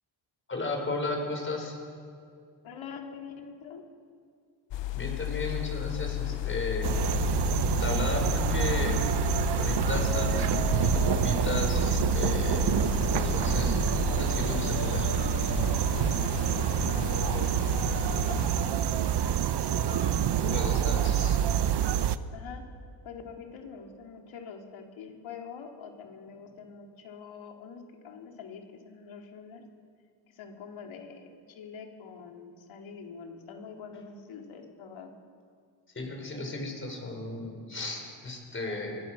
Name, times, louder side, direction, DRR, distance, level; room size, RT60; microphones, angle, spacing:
voice 1, 0.5-1.8 4.9-7.3 7.8-9.0 9.6-12.8 13.1-13.8 14.2-15.1 20.4-21.4 36.0-39.0, left 2 dB, 25° left, 2 dB, 5.2 m, -35 dB
voice 2, 2.6-3.8 16.9-17.5 18.1-20.8 21.2-21.3 22.3-22.6 23.0-29.6 30.3-35.1, left 6 dB, 85° left, 2 dB, 3.4 m, -44 dB
sound 1, 4.7-18.7, left 13 dB, 70° left, 0.7 m, -33 dB
sound 2, 6.8-22.2, right 10 dB, 60° right, 0.9 m, -27 dB
26.5 x 22.5 x 6.4 m, 2.3 s
cardioid pair, 140°, 46 cm